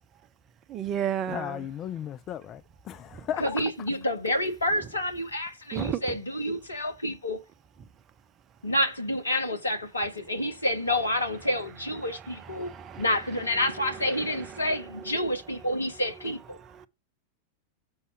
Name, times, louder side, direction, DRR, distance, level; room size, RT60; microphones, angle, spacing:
voice 1, 0.7-1.6 5.7-6.0 12.6-13.0, right 9 dB, 30° right, 0.7 m, -31 dB
voice 2, 1.3-3.6, left 10 dB, 30° left, 0.4 m, -35 dB
voice 3, 3.4-7.4 8.6-16.6, left 1 dB, 80° left, 1.4 m, -29 dB
7.2 x 5.4 x 4.6 m
figure-of-eight pair, 90°, 0 cm